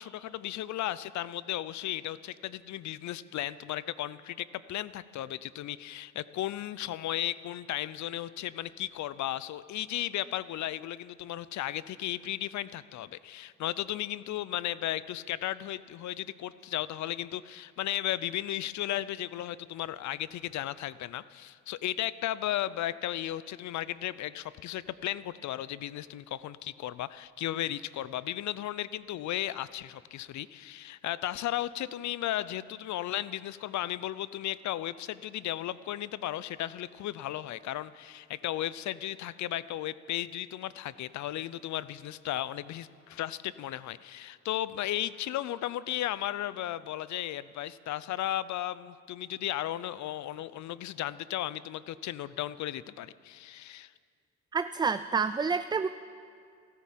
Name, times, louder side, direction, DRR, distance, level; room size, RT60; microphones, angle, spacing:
voice 1, 0.0-53.9, left 13 dB, 70° left, 17 dB, 0.6 m, -35 dB
voice 2, 54.5-55.9, right 5 dB, 15° right, 12 dB, 0.3 m, -28 dB
14.0 x 13.5 x 7.6 m, 2.2 s
cardioid pair, 90°, 30 cm